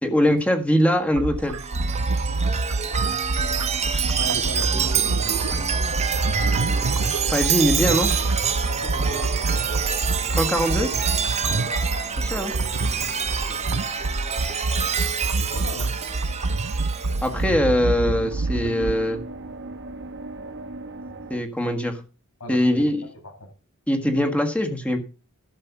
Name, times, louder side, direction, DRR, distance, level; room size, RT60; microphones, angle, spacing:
voice 1, 0.0-1.6 7.3-8.1 10.4-10.9 12.2-12.5 17.2-19.2 21.3-22.0 22.5-23.0 23.9-25.0, equal, 5° left, 4 dB, 1.5 m, -22 dB
sound 1, 1.1-18.9, right 2 dB, 80° right, 0.9 m, -27 dB
Chime, 1.5-17.3, right 7 dB, 30° right, 1.2 m, -27 dB
sound 2, 3.3-21.4, right 2 dB, 55° right, 1.3 m, -39 dB
voice 2, 4.2-5.5 8.6-9.5 11.4-11.7 13.3-13.6 15.4-16.0 22.4-23.5, equal, 75° left, 0 dB, 7.4 m, -37 dB
12.0 x 6.8 x 5.9 m, 0.34 s
head